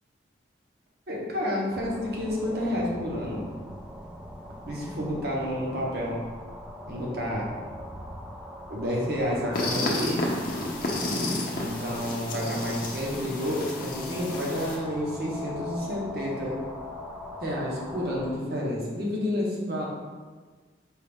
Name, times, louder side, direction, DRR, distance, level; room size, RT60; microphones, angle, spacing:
voice 1, 1.1-3.4 4.6-6.2 6.9-7.5 8.7-10.3 11.1-11.2 11.5-16.6 17.4-19.9, left 1 dB, 55° right, -3 dB, 0.9 m, -30 dB
sound 1, 1.7-18.3, left 1 dB, 5° right, 0.4 m, -41 dB
sound 2, 9.5-14.8, left 2 dB, 50° left, 0.6 m, -31 dB
4.6 x 2.4 x 3.4 m, 1.4 s
head